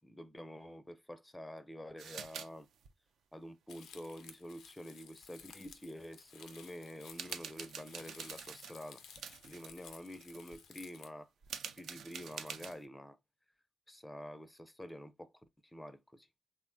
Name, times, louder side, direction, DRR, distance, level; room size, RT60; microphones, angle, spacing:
voice 1, 0.0-2.7 3.3-9.0 9.4-11.3 11.8-13.2 13.9-15.3 15.7-16.3, equal, 10° left, 0.4 m, -48 dB
sound 1, 2.0-2.5 2.7-2.9 5.7-5.8 6.3-6.6 7.0-9.7 10.1-10.5 11.4-12.8, right 7 dB, 70° right, 0.3 m, -46 dB
Crumpling crinkling, 3.7-11.1, left 7 dB, 75° left, 0.4 m, -56 dB
2.9 x 2.1 x 2.5 m
hypercardioid pair, 50°, 0 cm